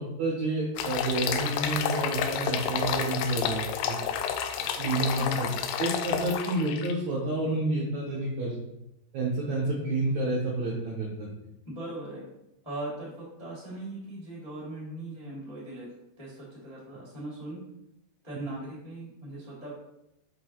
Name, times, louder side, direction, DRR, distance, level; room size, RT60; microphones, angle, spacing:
voice 1, 0.0-3.9 4.6-5.5 5.8-8.6 9.1-11.3, right 2 dB, 85° right, -4 dB, 1.5 m, -29 dB
sound 1, 0.8-6.9, left 8 dB, 80° left, 2.4 m, -30 dB
voice 2, 11.6-12.2 12.6-15.9 16.2-17.6 18.2-19.7, right 1 dB, 15° left, -6 dB, 1.0 m, -39 dB
6.0 x 5.9 x 3.0 m, 0.85 s
omnidirectional pair, 5.0 m